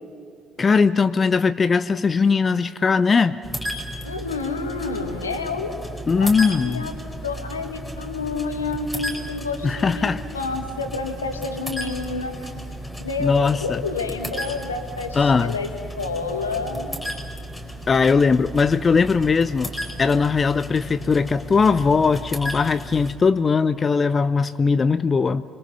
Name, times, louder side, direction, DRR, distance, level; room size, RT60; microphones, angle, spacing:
voice 1, 0.6-3.4 6.1-6.9 9.6-10.2 13.2-13.8 15.1-15.5 17.9-19.7 20.0-25.4, left 5 dB, 35° left, 13 dB, 0.6 m, -19 dB
sound 1, 3.4-23.1, equal, ahead, 4.9 m, -34 dB
voice 2, 4.0-5.7 6.2-7.0 7.2-12.4 13.0-15.7 16.0-16.9, left 4 dB, 85° left, 5 dB, 1.9 m, -29 dB
29.5 x 22.5 x 5.5 m, 2.5 s
figure-of-eight pair, 50°, 0 cm